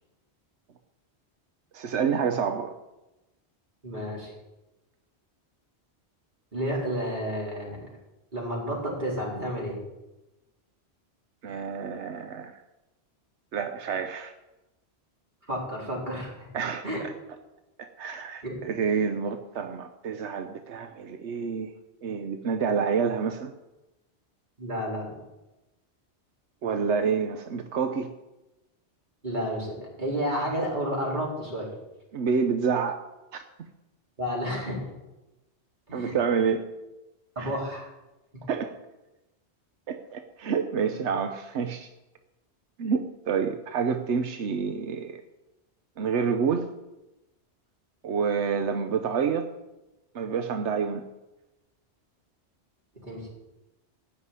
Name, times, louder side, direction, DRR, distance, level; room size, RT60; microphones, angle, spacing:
voice 1, 1.7-2.7 11.4-12.6 13.5-14.3 16.5-16.8 17.8-21.7 22.0-23.5 26.6-28.1 32.1-33.0 33.3-33.4 35.9-36.7 37.4-37.5 38.5-38.7 39.9-41.9 42.8-45.2 46.0-46.7 48.0-49.5 50.1-51.0, right 6 dB, 90° right, 7 dB, 1.1 m, -28 dB
voice 2, 3.8-4.3 6.5-7.9 8.3-9.8 15.5-16.5 16.8-17.0 18.4-18.6 24.6-25.1 29.2-31.7 34.2-34.9 35.9-36.1 37.4-37.9 38.3-38.4 53.0-53.3, equal, 45° right, -4 dB, 4.4 m, -31 dB
15.5 x 5.9 x 9.5 m, 1.0 s
omnidirectional pair, 1.1 m